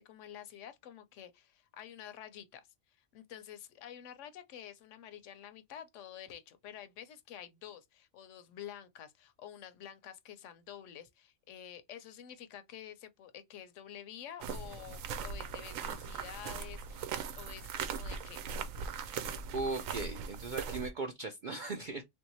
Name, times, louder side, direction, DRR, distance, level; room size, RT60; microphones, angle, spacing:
voice 1, 0.0-2.7 3.0-17.1 17.4-18.5, left 10 dB, 75° left, 0.9 m, -49 dB
sound 1, 14.4-20.9, right 6 dB, 90° right, 1.0 m, -40 dB
voice 2, 19.0-19.3 19.5-22.0, right 3 dB, 70° right, 0.4 m, -38 dB
3.3 x 2.6 x 2.8 m
omnidirectional pair, 1.3 m